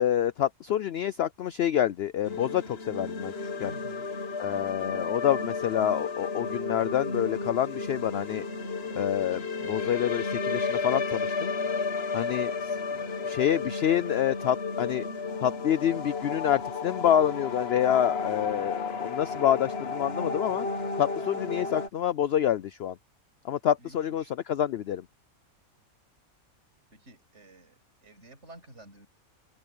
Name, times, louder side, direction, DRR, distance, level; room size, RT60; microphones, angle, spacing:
voice 1, 0.0-3.7 4.4-8.5 9.0-11.5 12.1-12.8 13.3-15.1 15.4-20.7 21.0-23.0 23.4-25.1, left 10 dB, 70° left, 0.6 m, -27 dB
sound 1, 2.2-21.9, left 4 dB, 45° left, 1.5 m, -33 dB
voice 2, 3.6-4.1 13.0-13.3 23.8-24.3 26.9-29.1, right 1 dB, 55° right, 6.9 m, -50 dB
open air
omnidirectional pair, 1.5 m